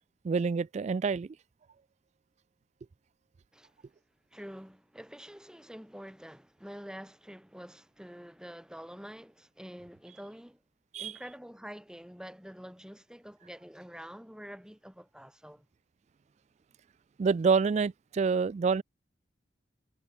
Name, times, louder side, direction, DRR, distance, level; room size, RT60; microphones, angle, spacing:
voice 1, 0.2-1.3 10.9-11.1 17.2-18.8, right 5 dB, 40° right, 0.3 m, -27 dB
voice 2, 4.3-10.6 11.0-15.7, equal, 5° right, 4.1 m, -47 dB
head